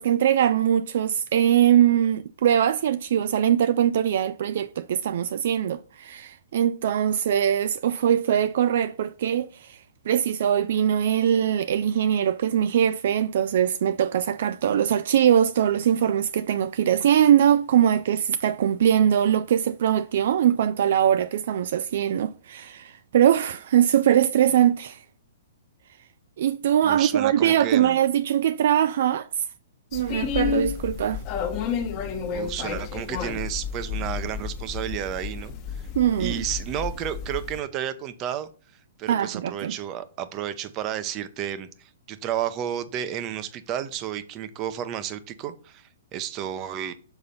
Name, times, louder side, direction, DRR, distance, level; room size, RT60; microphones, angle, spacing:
voice 1, 0.0-9.8 10.1-25.0 26.4-29.4 29.9-31.2 36.0-36.4 39.1-39.7, right 10 dB, 60° right, 0.3 m, -22 dB
voice 2, 26.8-28.0 32.3-35.5 36.2-38.5 39.0-41.7 42.1-46.9, right 10 dB, 30° right, 0.7 m, -31 dB
sound 1, 29.9-37.6, left 7 dB, 30° left, 1.1 m, -31 dB
6.9 x 4.0 x 5.6 m
hypercardioid pair, 145°, 0 cm